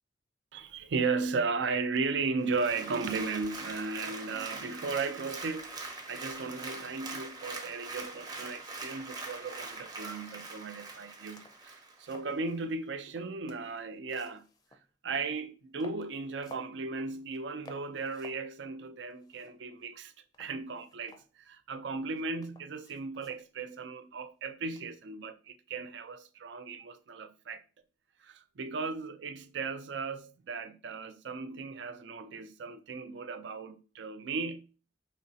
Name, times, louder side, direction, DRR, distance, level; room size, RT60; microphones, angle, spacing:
voice 1, 0.5-14.5 15.0-20.1 20.4-27.6 28.2-34.7, right 4 dB, 70° right, 0.4 m, -36 dB
Applause, 2.4-12.2 12.6-12.7, right 3 dB, 20° right, 0.7 m, -43 dB
sound 1, 11.0-11.1 11.4-12.4 13.0-14.9 15.3-15.4 15.8-16.8 17.2-17.4 17.7-18.5 18.8-18.9 19.1-19.9 20.3-21.7 22.1-23.5 24.8-25.1, left 2 dB, 20° left, 0.4 m, -56 dB
5.1 x 3.0 x 2.7 m
head